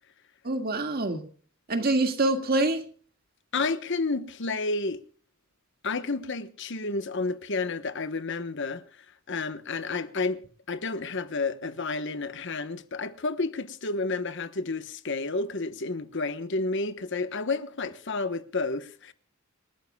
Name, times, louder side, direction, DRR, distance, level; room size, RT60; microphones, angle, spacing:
voice 1, 0.4-1.2 1.7-2.8, right 2 dB, 45° right, 2.0 m, -25 dB
voice 2, 3.5-5.0 5.8-8.8 9.3-19.1, left 3 dB, 60° left, 1.1 m, -31 dB
28.0 x 12.5 x 2.3 m
head